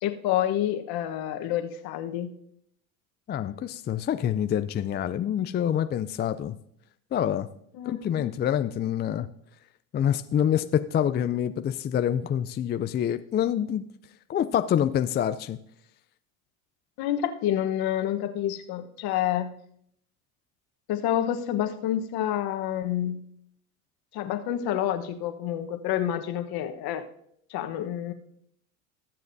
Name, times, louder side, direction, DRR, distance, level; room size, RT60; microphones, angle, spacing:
voice 1, 0.0-2.3 7.7-8.3 17.0-19.5 20.9-23.2 24.1-27.0 27.5-28.1, left 11 dB, 60° left, 7 dB, 1.3 m, -28 dB
voice 2, 3.3-6.6 7.1-7.5 7.9-9.3 9.9-13.9 14.3-15.6, left 9 dB, 25° left, 11 dB, 0.4 m, -26 dB
20.5 x 7.4 x 2.7 m, 0.71 s
hypercardioid pair, 90°, 43 cm